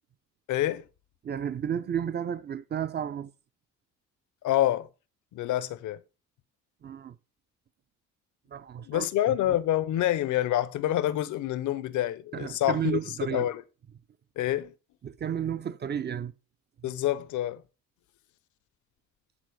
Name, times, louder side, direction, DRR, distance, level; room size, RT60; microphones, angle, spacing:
voice 1, 0.5-0.8 4.4-4.9 5.3-6.0 8.8-13.0 13.3-13.6 14.4-14.7 16.8-17.6, left 13 dB, 75° left, 0.6 m, -27 dB
voice 2, 1.2-3.3 6.8-7.2 8.5-9.6 12.3-13.5 15.0-16.3 16.8-16.9, right 9 dB, 35° right, 0.5 m, -32 dB
8.7 x 4.1 x 4.5 m
cardioid pair, 90°, 30 cm